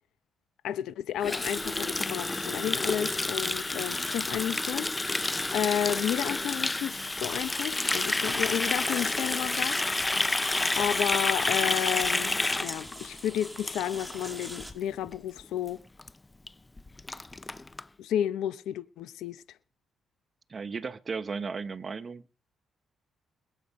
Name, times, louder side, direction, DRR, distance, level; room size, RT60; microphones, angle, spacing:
voice 1, 0.6-9.8 10.3-12.3 12.6-15.8 18.0-19.4, left 10 dB, 80° left, 0.9 m, -32 dB
Water tap faucet, 1.2-14.2 14.5-14.8 15.1-15.4 15.7-15.8 16.0-16.1 16.5-16.6 16.8-17.8, left 2 dB, 20° left, 0.6 m, -29 dB
sound 1, 3.9-14.7, equal, ahead, 2.7 m, -45 dB
voice 2, 20.5-22.2, right 5 dB, 35° right, 1.0 m, -35 dB
21.5 x 8.3 x 5.4 m
cardioid pair, 90°, 0 cm